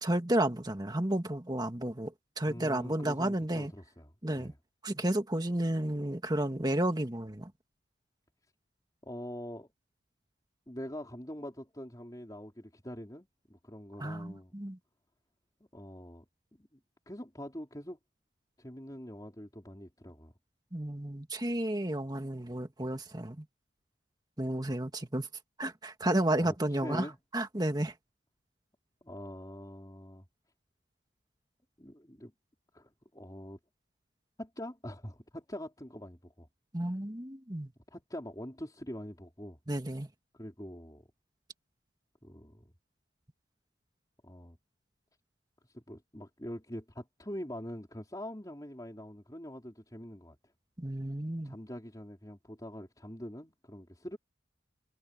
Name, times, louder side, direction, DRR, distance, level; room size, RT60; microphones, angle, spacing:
voice 1, 0.0-3.7 4.2-4.5 4.8-7.5 14.0-14.8 20.7-23.5 24.4-25.3 25.6-27.1 27.3-27.9 36.7-37.7 39.7-40.1 50.8-51.6, right 1 dB, 20° right, 1.9 m, -32 dB
voice 2, 2.5-4.6 9.0-9.7 10.7-14.5 15.7-16.2 16.6-16.7 17.1-18.0 18.6-20.3 26.4-26.5 26.8-27.2 29.0-30.2 31.8-32.3 32.7-33.6 34.4-36.5 37.9-39.6 40.3-41.0 42.2-42.7 44.2-44.6 45.7-50.4 51.4-54.2, equal, 20° left, 4.4 m, -44 dB
head